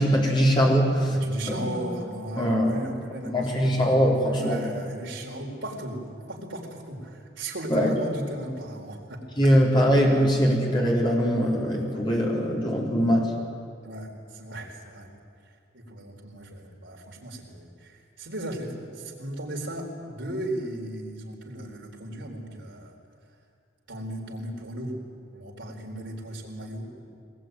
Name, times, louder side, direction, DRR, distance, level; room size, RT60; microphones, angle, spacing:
voice 1, 0.0-1.1 1.5-1.6 2.4-2.7 3.3-4.6 7.7-7.9 9.4-13.3, equal, 25° left, -2 dB, 4.2 m, -22 dB
voice 2, 1.1-3.9 4.3-9.5 9.8-9.9 13.8-15.1 15.4-22.9 23.9-25.0 25.3-27.1, right 1 dB, 70° right, 0 dB, 4.3 m, -36 dB
22.5 x 20.0 x 9.3 m, 2.3 s
head